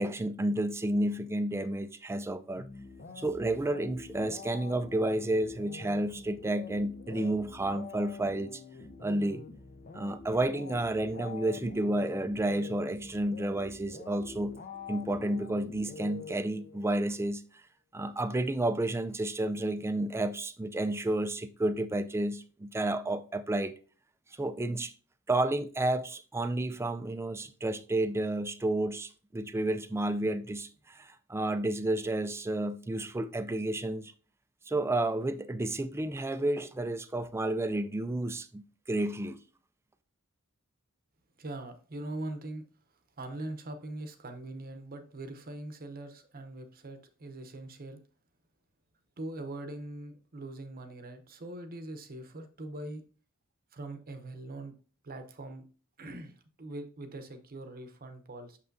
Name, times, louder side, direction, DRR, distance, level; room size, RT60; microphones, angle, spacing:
voice 1, 0.0-2.7 3.2-8.6 9.0-9.4 9.9-14.6 14.9-17.4 17.9-23.7 24.4-24.9 25.3-34.1 34.7-39.4, right 1 dB, 10° right, 0.4 m, -31 dB
sound 1, 2.6-16.9, left 5 dB, 40° left, 0.6 m, -46 dB
voice 2, 41.4-42.6 43.2-48.0 49.2-53.0 53.7-54.7 55.0-55.6 56.0-58.6, right 2 dB, 40° right, 0.8 m, -42 dB
6.6 x 5.7 x 2.6 m
head